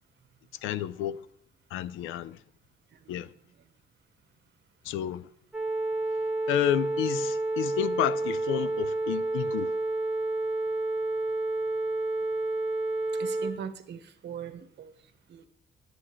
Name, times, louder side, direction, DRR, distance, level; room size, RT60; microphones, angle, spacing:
voice 1, 0.6-1.2 1.7-2.4 3.1-3.3 4.8-5.3 6.5-9.8, left 12 dB, 90° left, 0.5 m, -30 dB
sound 1, 5.5-13.5, right 2 dB, 5° right, 1.5 m, -29 dB
voice 2, 13.2-14.9 15.3-15.5, right 8 dB, 60° right, 1.1 m, -40 dB
11.0 x 7.6 x 3.1 m
cardioid pair, 90°, 20 cm